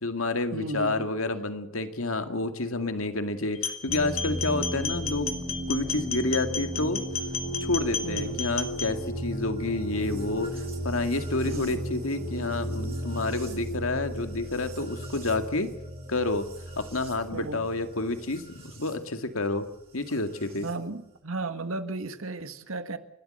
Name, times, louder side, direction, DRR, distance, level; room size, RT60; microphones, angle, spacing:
voice 1, 0.0-7.0 7.6-15.7 16.1-16.5 16.8-19.7 19.9-20.7, left 2 dB, 90° left, 2.0 m, -29 dB
voice 2, 0.5-1.1 8.0-8.4 11.4-11.8 17.3-17.7 20.6-23.0, right 2 dB, 85° right, 1.7 m, -34 dB
sound 1, 3.5-8.9, left 6 dB, 70° left, 2.3 m, -33 dB
sound 2, 3.9-18.9 20.1-20.7, equal, 30° right, 7.6 m, -35 dB
30.0 x 13.0 x 7.8 m
head